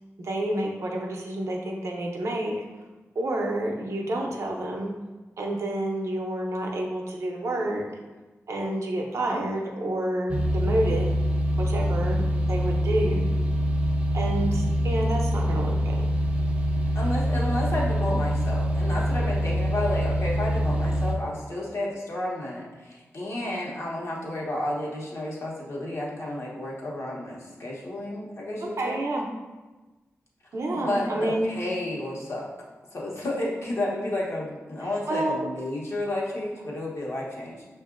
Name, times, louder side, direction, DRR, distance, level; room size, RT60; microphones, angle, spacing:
voice 1, 0.2-2.5 3.2-4.9 5.4-7.8 8.5-11.1 11.6-13.2 14.1-16.1 28.8-29.2 30.5-31.5 35.1-35.4, right 1 dB, 75° right, 0 dB, 0.6 m, -29 dB
sound 1, 10.3-21.2, equal, 25° right, 0.5 m, -25 dB
voice 2, 14.3-14.8 16.9-29.0 30.7-32.5 32.9-37.7, left 1 dB, 60° left, -4 dB, 1.0 m, -31 dB
5.7 x 2.5 x 2.4 m, 1.2 s
wide cardioid pair, 95°, 5 cm